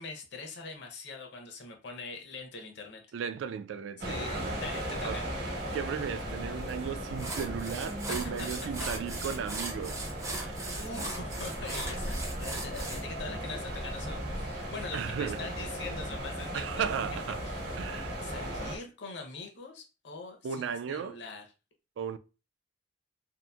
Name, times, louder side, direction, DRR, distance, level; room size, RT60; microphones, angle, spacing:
voice 1, 0.0-3.0 4.1-5.3 8.1-8.5 8.8-8.9 9.2-9.4 10.8-17.2 17.4-17.6 18.2-21.4, left 3 dB, 70° left, 0.7 m, -43 dB
voice 2, 3.1-4.6 5.0-5.2 5.7-10.0 10.4-10.6 14.9-15.5 16.5-17.4 17.8-18.2 20.4-21.2 22.0-22.2, right 7 dB, 90° right, 0.3 m, -35 dB
sound 1, 4.0-18.8, right 1 dB, 60° right, 0.9 m, -37 dB
sound 2, 6.7-6.8 7.2-13.0, right 3 dB, 15° right, 0.4 m, -39 dB
2.8 x 2.4 x 2.3 m
head